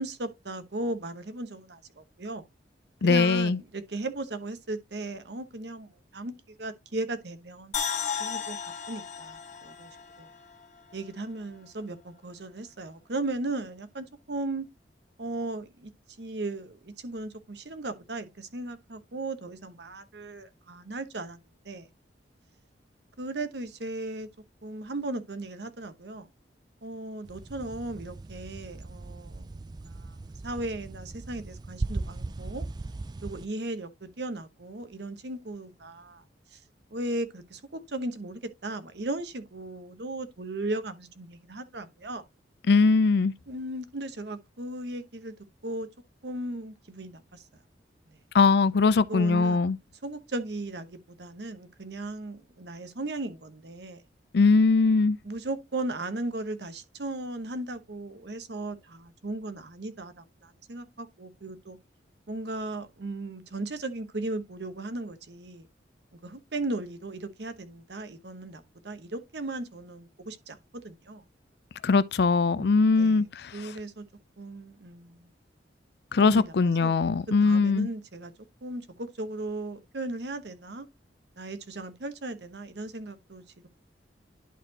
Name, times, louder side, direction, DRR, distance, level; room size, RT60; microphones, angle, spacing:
voice 1, 0.0-2.4 3.0-6.3 6.6-7.8 8.1-8.6 8.9-10.3 10.9-14.7 15.2-15.9 16.2-21.4 21.6-21.9 23.2-24.3 24.6-26.3 26.8-30.2 30.4-32.6 33.2-36.2 36.5-36.6 36.9-42.2 43.5-45.3 45.6-45.9 46.2-47.5 48.1-48.2 49.1-49.7 50.0-54.0 55.2-61.8 62.3-65.7 66.2-71.2 72.5-73.3 73.5-74.0 74.4-75.3 76.2-76.5 76.8-77.0 77.4-78.3 78.6-80.9 81.4-83.7, right 2 dB, 65° right, 1.0 m, -36 dB
voice 2, 3.0-3.6 42.7-43.3 48.3-49.8 54.3-55.2 71.8-73.7 76.1-77.9, left 4 dB, 60° left, 0.4 m, -21 dB
sound 1, 7.7-10.9 11.3-11.4, left 7 dB, 40° left, 1.5 m, -35 dB
sound 2, 27.2-33.5, right 2 dB, 25° right, 0.3 m, -38 dB
11.0 x 4.2 x 2.8 m
head